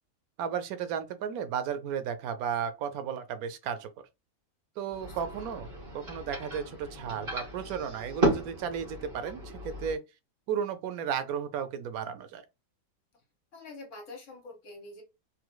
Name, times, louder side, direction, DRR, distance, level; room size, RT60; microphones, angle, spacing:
voice 1, 0.4-3.9 4.8-10.0 10.5-12.4, right 8 dB, 85° right, 1.1 m, -34 dB
voice 2, 4.9-5.5 13.5-15.0, left 2 dB, 60° left, 1.4 m, -46 dB
sound 1, 4.9-9.9, right 1 dB, 40° right, 1.9 m, -34 dB
3.8 x 2.6 x 2.2 m
omnidirectional pair, 1.5 m